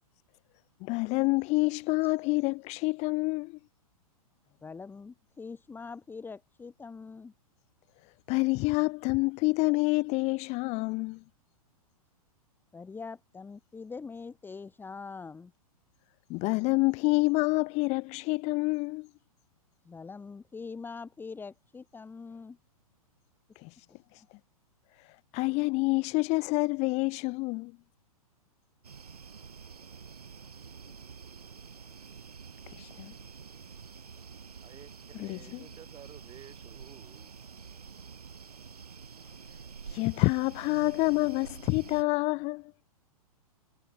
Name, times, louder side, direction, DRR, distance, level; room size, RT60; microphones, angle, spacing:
voice 1, 0.8-3.6 8.3-11.2 16.3-19.1 23.6-23.7 25.3-27.7 32.8-33.1 35.2-35.6 39.9-42.7, left 25 dB, 35° left, 1.0 m, -27 dB
voice 2, 4.6-7.3 12.7-15.5 19.8-22.6, left 4 dB, 10° left, 1.4 m, -43 dB
sound 1, 28.8-42.0, right 6 dB, 80° right, 3.9 m, -48 dB
voice 3, 34.6-37.3 39.9-40.1, right 11 dB, 25° right, 5.2 m, -53 dB
hypercardioid pair, 110°, 19 cm